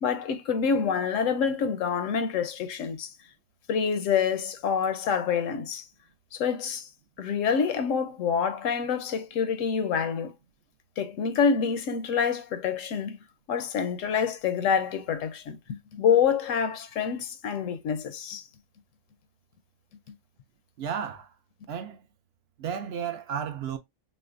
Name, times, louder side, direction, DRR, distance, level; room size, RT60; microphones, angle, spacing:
voice 1, 0.0-3.1 3.7-5.9 6.3-6.9 7.2-10.3 11.0-13.2 13.5-18.4, left 6 dB, 85° left, 1.1 m, -27 dB
voice 2, 20.8-21.3 21.7-22.1 22.6-23.8, right 8 dB, 65° right, 0.7 m, -33 dB
5.8 x 2.1 x 2.5 m
omnidirectional pair, 1.3 m